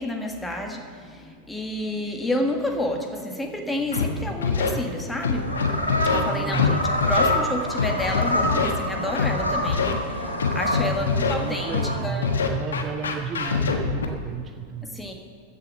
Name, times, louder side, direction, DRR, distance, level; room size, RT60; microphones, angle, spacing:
voice 1, 0.0-12.3 14.9-15.1, left 1 dB, 5° left, 2 dB, 1.7 m, -30 dB
Scratching (performance technique), 3.9-4.1 4.4-4.7 5.2-6.2 6.5-6.7 7.0-7.3 7.8-8.7 9.2-9.3 9.7-9.9 10.4-11.3 11.7-11.9 12.2-14.1, left 6 dB, 65° left, 1.3 m, -23 dB
sound 1, 5.1-12.0, equal, 90° right, 1.7 m, -27 dB
voice 2, 6.3-6.9 10.9-15.0, right 6 dB, 25° right, 8 dB, 0.5 m, -33 dB
14.5 x 6.9 x 7.4 m, 2.2 s
figure-of-eight pair, 90°, 0 cm